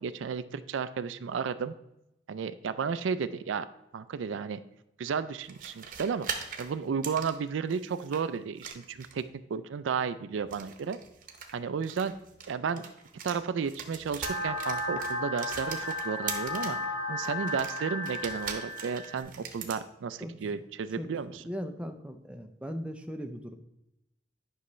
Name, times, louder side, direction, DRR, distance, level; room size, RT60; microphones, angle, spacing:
voice 1, 0.0-1.7 2.3-3.7 3.9-4.6 5.0-6.3 6.6-9.2 9.5-11.0 11.5-12.2 12.5-12.9 13.2-16.8 17.1-21.4, right 6 dB, 85° right, 13 dB, 0.4 m, -33 dB
sound 1, 5.4-8.2 8.6-9.3 10.4-13.4 13.6-16.8 17.2-19.8, right 6 dB, 45° right, 0.8 m, -41 dB
sound 2, 14.2-19.2, left 1 dB, 10° left, 1.2 m, -34 dB
voice 2, 20.2-20.6 21.0-23.6, equal, 5° right, 5 dB, 0.4 m, -39 dB
9.8 x 5.6 x 3.1 m, 0.86 s
head